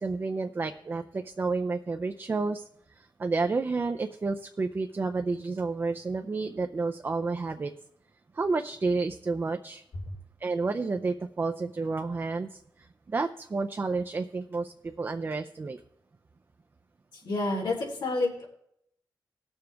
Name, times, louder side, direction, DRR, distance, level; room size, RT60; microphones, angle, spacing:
voice 1, 0.0-7.7 8.3-9.8 10.4-15.8, right 3 dB, 30° right, 6 dB, 0.5 m, -30 dB
voice 2, 17.1-18.5, left 2 dB, 80° left, -2 dB, 3.6 m, -29 dB
18.5 x 7.0 x 3.4 m, 0.72 s
wide cardioid pair, 165°, 8 cm